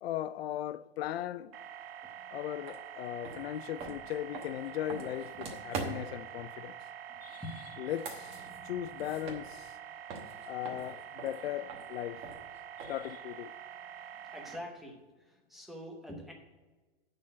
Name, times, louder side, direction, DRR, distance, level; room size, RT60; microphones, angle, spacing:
voice 1, 0.0-1.6 2.3-6.7 7.2-7.4 7.8-9.7 10.4-12.2 12.8-13.5, left 12 dB, 80° left, 0.5 m, -38 dB
sound 1, 1.5-14.6, right 9 dB, 75° right, 0.9 m, -47 dB
sound 2, 2.7-2.8 3.2-6.2 7.7-9.8 10.1-13.1, right 4 dB, 20° right, 1.0 m, -43 dB
voice 2, 7.1-7.9 14.1-16.3, left 1 dB, ahead, 0.7 m, -46 dB
10.5 x 4.0 x 7.4 m
supercardioid pair, 170°, 31 cm